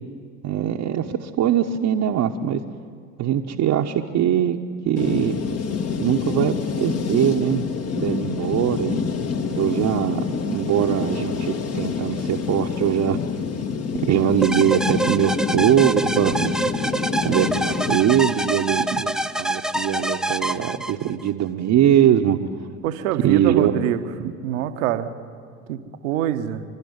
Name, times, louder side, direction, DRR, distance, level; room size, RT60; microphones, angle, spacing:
voice 1, 0.4-2.6 3.2-4.6 4.8-5.4 6.0-7.6 7.9-9.0 9.6-13.2 14.0-16.6 17.2-22.4 23.2-23.7 24.2-24.3, right 10 dB, 45° right, 0 dB, 1.1 m, -21 dB
sound 1, 5.0-18.0, left 5 dB, 40° left, 1.7 m, -27 dB
sound 2, 14.4-21.3, right 1 dB, ahead, 0.5 m, -26 dB
voice 2, 22.8-24.0 24.4-25.1 25.7-25.8 26.0-26.6, right 11 dB, 75° right, 9 dB, 1.3 m, -24 dB
28.0 x 12.5 x 9.7 m, 2.1 s
hypercardioid pair, 65°, 40 cm